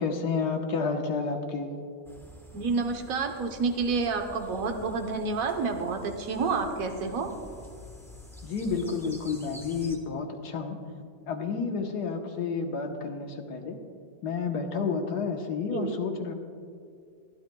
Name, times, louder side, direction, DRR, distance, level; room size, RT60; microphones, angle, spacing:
voice 1, 0.0-1.7 8.4-10.8 11.3-13.8 14.2-16.3, left 5 dB, 90° left, 4 dB, 1.7 m, -30 dB
sound 1, 2.0-10.0, equal, ahead, 1.0 m, -48 dB
voice 2, 2.5-7.3 15.7-15.9, right 4 dB, 65° right, 5 dB, 1.4 m, -29 dB
22.5 x 12.5 x 2.3 m, 2.3 s
omnidirectional pair, 1.7 m